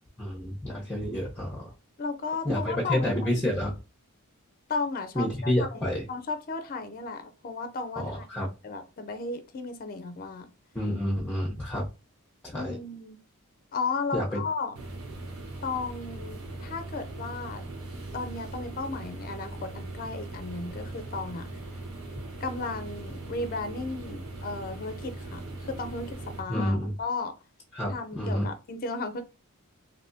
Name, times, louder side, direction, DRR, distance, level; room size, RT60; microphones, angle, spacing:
voice 1, 0.2-1.7 2.4-3.7 5.1-6.0 8.0-8.5 10.7-11.9 12.4-12.8 14.1-14.4 26.5-26.9 27.7-28.5, left 1 dB, 5° left, 0.8 m, -29 dB
voice 2, 2.0-3.4 4.7-5.8 6.1-8.3 8.6-10.5 12.5-13.2 13.7-14.7 15.6-17.6 18.1-21.5 22.4-27.3 27.9-29.2, left 4 dB, 40° left, 0.5 m, -34 dB
sound 1, 14.7-26.4, right 2 dB, 70° right, 1.0 m, -40 dB
3.4 x 2.7 x 2.7 m
head